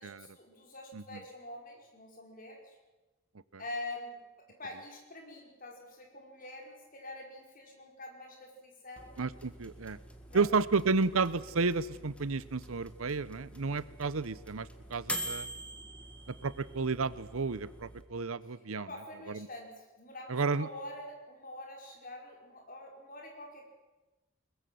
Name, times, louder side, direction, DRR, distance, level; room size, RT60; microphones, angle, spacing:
voice 1, 0.0-2.7 3.6-4.2 4.5-9.1 10.3-10.5 18.8-23.7, left 1 dB, 40° left, 1 dB, 5.3 m, -45 dB
sound 1, 9.0-18.0, equal, 5° left, 1.8 m, -45 dB
voice 2, 9.2-10.0 10.3-15.5 16.4-18.9 19.3-19.5 20.3-20.7, right 4 dB, 80° right, 17 dB, 0.8 m, -32 dB
22.0 x 21.5 x 7.8 m, 1.1 s
head